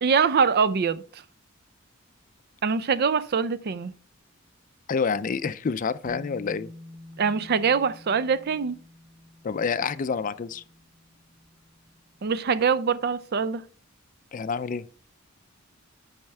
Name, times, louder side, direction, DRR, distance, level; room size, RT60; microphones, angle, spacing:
voice 1, 0.0-1.0 2.6-3.9 7.2-8.8 12.2-13.6, right 6 dB, 50° right, 0.5 m, -23 dB
voice 2, 4.9-6.7 9.4-10.6 14.3-14.9, left 5 dB, 40° left, 0.4 m, -28 dB
sound 1, 6.1-12.6, left 1 dB, 90° right, 2.6 m, -48 dB
8.9 x 5.6 x 3.3 m
head